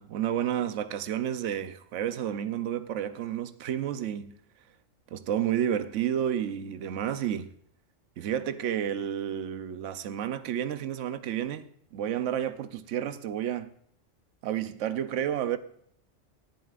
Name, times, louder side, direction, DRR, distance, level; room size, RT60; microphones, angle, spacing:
voice 1, 0.0-4.4 5.1-7.5 8.2-13.7 14.4-15.6, right 10 dB, 80° right, 1.0 m, -31 dB
19.0 x 11.0 x 2.5 m
omnidirectional pair, 1.3 m